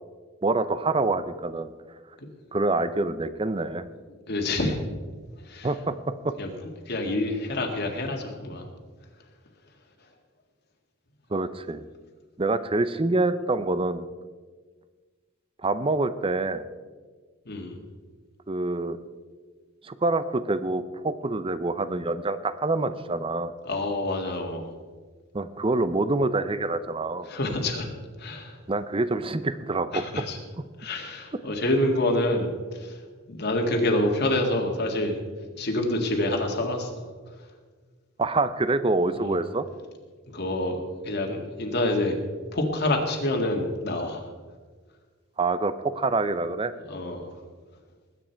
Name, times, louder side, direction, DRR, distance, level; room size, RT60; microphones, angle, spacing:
voice 1, 0.4-1.7 2.5-3.9 5.6-6.0 6.2-6.3 11.3-11.8 12.4-14.0 15.6-16.7 18.5-19.0 19.8-23.5 25.3-27.3 28.7-30.0 38.2-39.6 45.4-46.7, right 2 dB, 25° right, 13 dB, 0.6 m, -26 dB
voice 2, 4.3-4.8 5.4-5.7 6.4-6.5 6.9-8.7 17.4-17.8 23.6-24.7 27.3-27.9 28.2-28.6 29.9-30.4 30.8-33.0 33.3-35.2 35.6-37.0 39.2-39.3 40.3-42.2 42.5-44.3 46.8-47.3, left 1 dB, 55° left, 2 dB, 1.9 m, -27 dB
20.0 x 8.9 x 4.5 m, 1.4 s
head